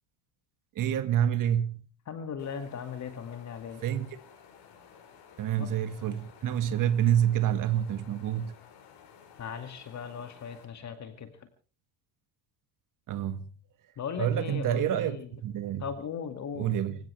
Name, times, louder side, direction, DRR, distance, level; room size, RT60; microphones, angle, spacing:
voice 1, 0.8-1.8 3.8-4.1 5.4-8.5 13.1-13.4 14.2-15.2 15.4-15.8 16.6-17.0, right 10 dB, 45° right, 1.9 m, -27 dB
voice 2, 2.1-3.8 5.6-5.7 9.4-11.5 14.0-15.3 15.8-16.7, left 7 dB, 40° left, 2.3 m, -38 dB
sound 1, 2.4-10.6, left 7 dB, 65° left, 6.7 m, -54 dB
26.0 x 16.5 x 3.4 m
cardioid pair, 135°, 44 cm